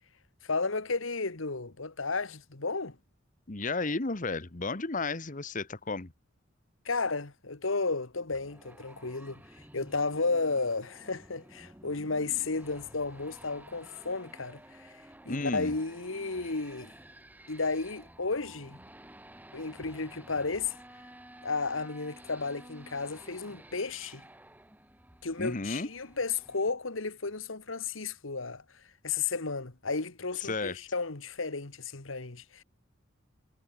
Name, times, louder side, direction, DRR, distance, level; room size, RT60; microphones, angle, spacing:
voice 1, 0.4-3.0 6.9-9.4 9.7-14.9 15.3-16.9 17.5-18.8 19.5-20.7 21.4-24.2 25.2-28.6 29.0-32.6, left 4 dB, 80° left, 1.8 m, -33 dB
voice 2, 3.5-6.1 15.3-15.7 25.4-25.9 30.3-30.8, left 3 dB, 40° left, 1.3 m, -33 dB
sound 1, 8.3-26.7, right 1 dB, 10° right, 5.0 m, -53 dB
head